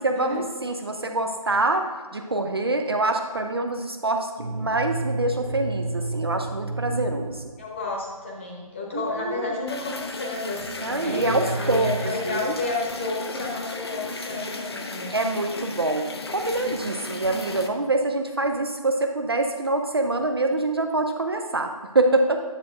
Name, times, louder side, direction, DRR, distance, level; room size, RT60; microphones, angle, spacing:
voice 1, 0.0-7.5 8.9-9.6 10.8-12.5 15.1-22.4, right 2 dB, 40° right, 5 dB, 0.5 m, -25 dB
sound 1, 4.4-8.3 10.5-10.6 11.1-12.1, right 2 dB, 80° right, 1.0 m, -31 dB
voice 2, 7.6-15.1, left 3 dB, 20° left, -2 dB, 1.0 m, -31 dB
sound 2, 9.7-17.7, left 2 dB, 45° left, 0.6 m, -35 dB
10.0 x 7.5 x 2.6 m, 1.5 s
figure-of-eight pair, 155°, 19 cm